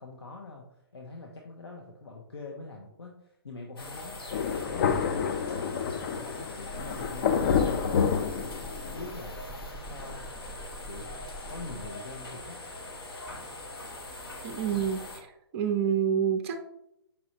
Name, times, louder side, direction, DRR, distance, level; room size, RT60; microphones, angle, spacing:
voice 1, 0.0-4.2 4.5-5.0 5.4-9.4 9.8-10.3 10.8-11.1 11.5-12.6, left 3 dB, 85° left, 0 dB, 0.7 m, -44 dB
sound 1, 3.8-15.2, left 2 dB, 65° left, 1.2 m, -42 dB
Thunder, 4.3-9.1, left 7 dB, 45° left, 0.4 m, -28 dB
sound 2, 6.7-11.9, equal, 15° left, 0.7 m, -44 dB
voice 2, 14.4-16.6, right 8 dB, 30° right, 6 dB, 0.5 m, -28 dB
5.3 x 3.1 x 2.8 m, 0.80 s
figure-of-eight pair, 135°, 13 cm